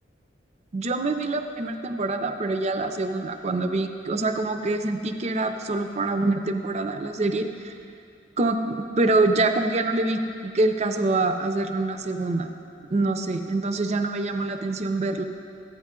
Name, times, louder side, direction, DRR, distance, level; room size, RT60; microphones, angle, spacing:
voice 1, 0.7-7.7 8.4-12.5 12.9-15.2, right 2 dB, 35° right, 7 dB, 0.4 m, -25 dB
12.5 x 7.9 x 3.7 m, 2.4 s
head